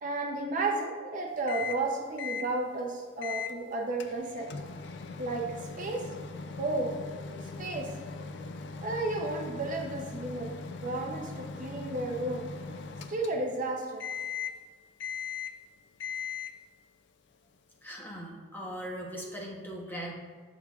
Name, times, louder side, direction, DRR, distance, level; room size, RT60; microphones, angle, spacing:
voice 1, 0.0-4.5 5.2-6.0 6.6-6.9 7.4-7.9 8.4-8.5 8.8-10.5 10.8-12.5 13.1-14.1, right 2 dB, 40° right, 2 dB, 0.5 m, -33 dB
Microwave oven, 1.5-1.9 2.2-2.5 3.2-3.6 4.0-13.6 14.0-14.6 15.0-15.6 16.0-16.6, left 5 dB, 60° left, 0.4 m, -39 dB
voice 2, 17.8-20.1, equal, 10° left, -2 dB, 0.8 m, -39 dB
8.6 x 5.8 x 2.3 m, 1.5 s
head